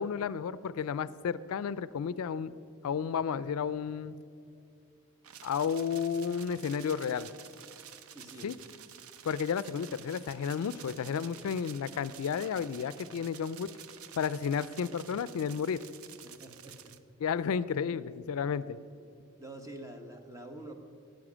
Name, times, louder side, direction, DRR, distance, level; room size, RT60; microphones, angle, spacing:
voice 1, 0.0-2.5 2.8-4.2 5.4-7.3 8.4-8.6 9.2-13.7 14.2-15.8 17.2-18.8, left 7 dB, 80° left, 17 dB, 0.4 m, -32 dB
sound 1, 5.2-17.0, right 8 dB, 80° right, 0.6 m, -50 dB
voice 2, 8.1-8.5 16.2-16.9 19.4-20.7, right 1 dB, 15° right, 5 dB, 0.9 m, -46 dB
12.5 x 9.1 x 6.2 m, 2.6 s
head